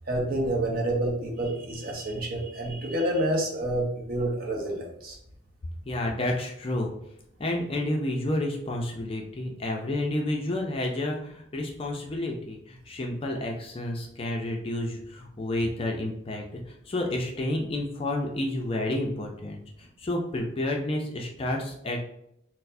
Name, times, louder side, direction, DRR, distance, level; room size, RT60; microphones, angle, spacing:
voice 1, 0.1-5.2, right 1 dB, 45° right, 0 dB, 0.7 m, -28 dB
voice 2, 5.9-6.9 7.4-22.0, left 1 dB, 25° left, 0 dB, 0.4 m, -30 dB
4.3 x 2.0 x 2.6 m, 0.76 s
head